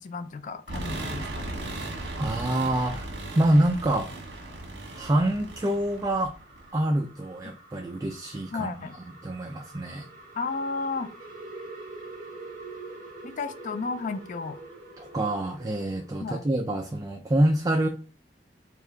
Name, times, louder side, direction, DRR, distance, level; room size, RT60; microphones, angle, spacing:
voice 1, 0.0-1.6 7.4-7.6 8.5-9.0 10.4-11.1 13.2-14.6 16.2-16.4, left 4 dB, 45° left, 9 dB, 0.4 m, -33 dB
sound 1, 0.7-6.8, right 2 dB, 70° right, 1.3 m, -37 dB
sound 2, 1.8-16.4, right 2 dB, 50° right, 1.5 m, -47 dB
voice 2, 2.2-4.1 4.9-6.3 6.7-8.7 9.2-10.1 15.0-17.9, right 1 dB, 20° right, 3 dB, 0.4 m, -26 dB
4.6 x 2.5 x 3.3 m, 0.36 s
head